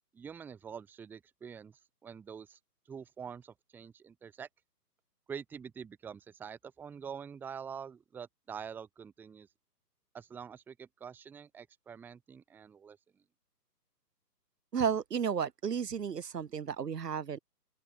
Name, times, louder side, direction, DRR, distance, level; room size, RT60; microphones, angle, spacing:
voice 1, 0.1-2.6 2.9-4.5 5.3-9.5 10.1-13.0, right 7 dB, 5° right, 1.2 m, -46 dB
voice 2, 14.7-17.4, right 7 dB, 75° right, 1.0 m, -33 dB
open air
figure-of-eight pair, 140°, 49 cm